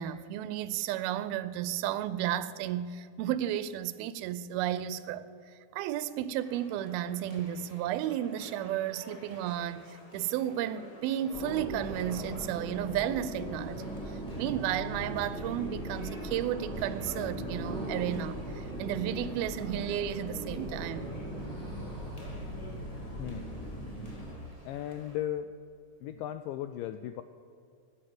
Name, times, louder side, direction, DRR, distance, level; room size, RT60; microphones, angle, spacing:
voice 1, 0.0-5.3 5.7-14.0 14.4-21.1, right 11 dB, 85° right, 2.5 m, -33 dB
sound 1, 6.4-25.2, left 1 dB, 20° left, 1.0 m, -50 dB
sound 2, 11.3-24.3, right 1 dB, ahead, 3.8 m, -39 dB
voice 2, 24.7-25.5 26.0-27.2, left 11 dB, 85° left, 1.9 m, -36 dB
16.5 x 9.6 x 7.8 m
omnidirectional pair, 4.4 m